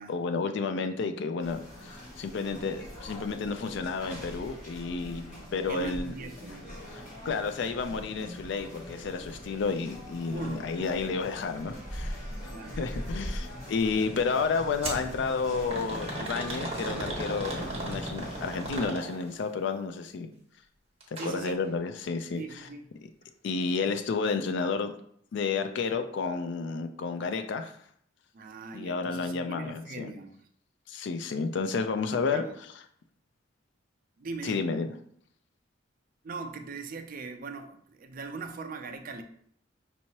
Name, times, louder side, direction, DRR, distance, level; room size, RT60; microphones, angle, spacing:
voice 1, 0.1-6.1 6.9-12.2 12.8-20.3 21.2-22.7 23.4-24.9 25.3-27.8 28.7-30.1 30.9-32.4 34.4-34.9, left 4 dB, 65° left, 7 dB, 0.4 m, -31 dB
sound 1, 1.4-18.9, equal, 40° left, 1.7 m, -42 dB
voice 2, 5.7-6.8 10.3-10.7 12.5-12.9 21.2-21.6 22.3-22.8 28.3-30.4 32.1-32.6 34.2-34.6 36.2-39.2, right 4 dB, 45° right, 6 dB, 0.5 m, -40 dB
sound 2, 14.8-15.1 15.7-19.4 21.0-21.3 21.7-21.8 22.6-22.7, right 2 dB, 30° right, 1.1 m, -36 dB
5.4 x 3.0 x 2.8 m, 0.65 s
head